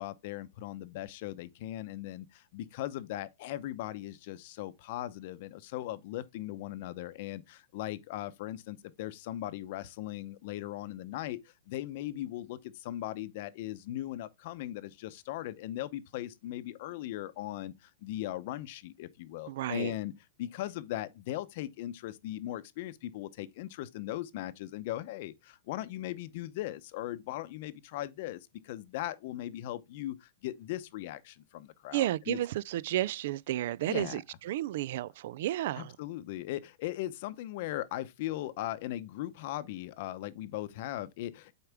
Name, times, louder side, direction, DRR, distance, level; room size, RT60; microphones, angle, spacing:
voice 1, 0.0-20.1 20.4-32.4 33.9-34.2 35.7-41.6, left 14 dB, 45° left, 0.7 m, -38 dB
voice 2, 19.5-19.9 31.9-36.0, right 14 dB, 55° right, 0.3 m, -32 dB
8.1 x 4.8 x 3.4 m
supercardioid pair, 160°, 0 cm